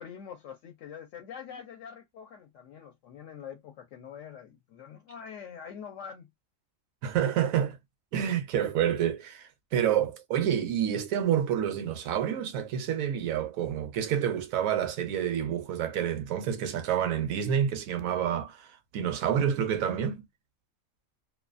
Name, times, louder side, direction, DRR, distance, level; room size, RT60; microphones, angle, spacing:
voice 1, 0.0-6.3, left 7 dB, 70° left, 0.9 m, -44 dB
voice 2, 7.0-7.8 8.1-18.7 18.9-20.2, right 9 dB, 80° right, 1.0 m, -28 dB
2.6 x 2.3 x 2.3 m
omnidirectional pair, 1.4 m